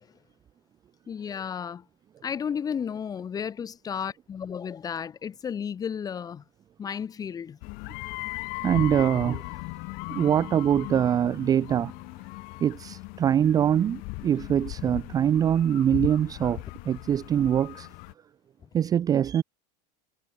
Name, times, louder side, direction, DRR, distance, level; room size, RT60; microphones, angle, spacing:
voice 1, 1.1-1.9 2.2-6.4 6.8-7.6, left 7 dB, 20° left, 1.9 m, -33 dB
sound 1, 7.6-18.1, left 29 dB, 50° left, 2.0 m, -38 dB
voice 2, 8.6-9.4 10.1-11.9 12.6-17.9 18.7-19.4, right 9 dB, 20° right, 0.5 m, -23 dB
supercardioid pair, 160°, 20 cm